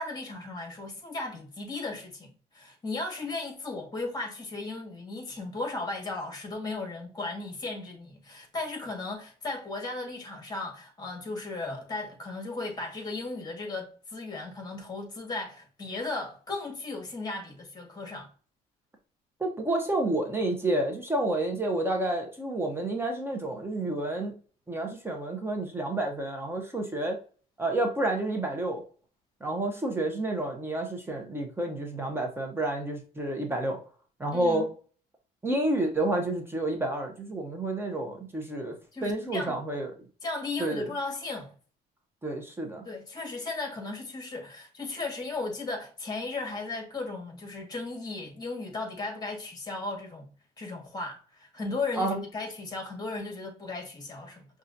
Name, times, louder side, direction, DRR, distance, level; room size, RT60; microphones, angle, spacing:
voice 1, 0.0-18.3 34.3-34.7 38.9-39.6 40.2-41.5 42.9-50.3 50.6-54.5, left 3 dB, 25° left, 1.6 m, -36 dB
voice 2, 19.4-24.4 24.7-27.2 27.6-28.8 29.4-33.8 34.2-34.7 35.4-38.8 39.0-39.9 40.6-40.9 42.2-42.8 52.0-52.2, right 2 dB, 15° right, 0.8 m, -29 dB
5.4 x 2.4 x 2.6 m
cardioid pair, 110°, 17 cm